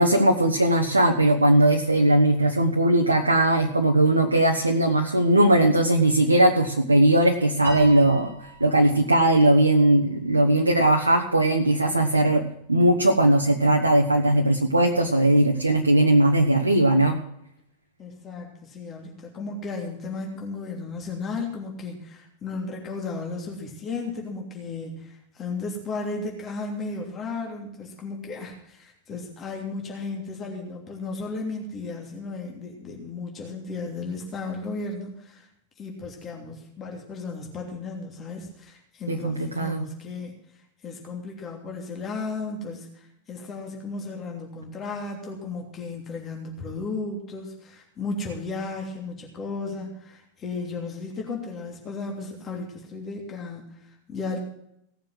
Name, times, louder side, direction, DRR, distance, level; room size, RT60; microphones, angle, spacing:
voice 1, 0.0-17.2 39.1-39.8, right 1 dB, 80° right, 2 dB, 1.2 m, -19 dB
Piano, 7.6-10.1, right 1 dB, 80° left, 5.2 m, -39 dB
voice 2, 18.0-35.5 35.8-40.4 40.8-54.4, left 3 dB, 25° left, 1 dB, 3.1 m, -34 dB
17.5 x 7.3 x 7.7 m, 0.75 s
figure-of-eight pair, 90°, 0 cm